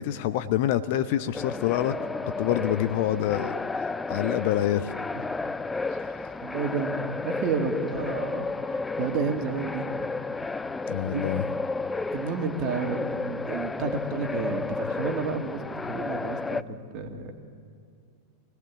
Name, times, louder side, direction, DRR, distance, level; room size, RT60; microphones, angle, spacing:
voice 1, 0.0-1.9 2.4-3.5 4.1-4.9 10.9-11.5, left 12 dB, 50° left, 12 dB, 0.8 m, -26 dB
sound 1, 1.3-16.6, left 3 dB, 10° left, 0.5 m, -32 dB
voice 2, 6.4-9.9 11.1-11.4 12.1-17.3, right 4 dB, 40° right, 3 dB, 2.4 m, -31 dB
24.5 x 18.0 x 7.3 m, 2.3 s
figure-of-eight pair, 90°, 0 cm